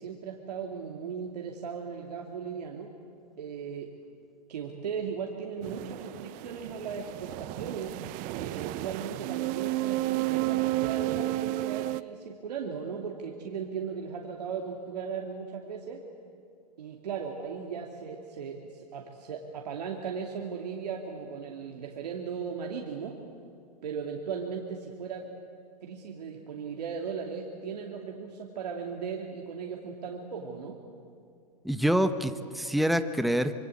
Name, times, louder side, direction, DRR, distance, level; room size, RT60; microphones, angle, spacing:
voice 1, 0.0-2.9 3.4-3.9 4.5-8.0 8.3-16.0 16.8-23.2 23.8-25.3 25.8-30.8, right 6 dB, 80° right, 0 dB, 2.6 m, -37 dB
sound 1, 5.6-12.0, right 19 dB, 40° right, 0.7 m, -32 dB
voice 2, 31.6-33.6, equal, ahead, 10 dB, 1.1 m, -26 dB
26.0 x 23.0 x 8.5 m, 2.4 s
hypercardioid pair, 115°, 20 cm